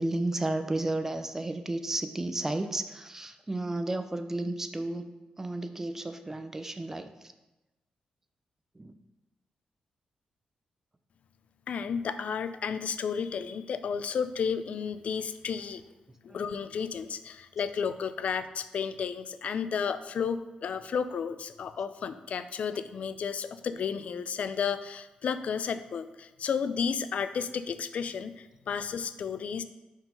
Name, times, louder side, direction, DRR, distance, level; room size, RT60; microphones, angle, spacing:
voice 1, 0.0-5.1 5.4-7.1 8.8-8.9 16.3-16.4, right 2 dB, 15° right, 8 dB, 0.6 m, -32 dB
voice 2, 11.7-15.8 16.2-29.6, left 6 dB, 60° left, 12 dB, 0.4 m, -32 dB
5.6 x 4.8 x 5.3 m, 1.0 s
cardioid pair, 100°, 3 cm